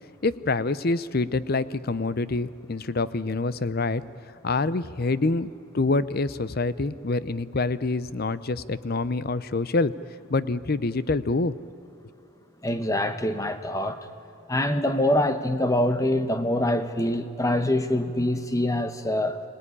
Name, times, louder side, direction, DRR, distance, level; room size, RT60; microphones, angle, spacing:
voice 1, 0.2-4.0 4.4-9.9 10.3-11.5, left 3 dB, 45° left, 16 dB, 0.6 m, -26 dB
voice 2, 12.6-14.1 14.5-19.4, left 1 dB, 15° left, 9 dB, 1.0 m, -25 dB
25.5 x 18.5 x 9.9 m, 2.9 s
head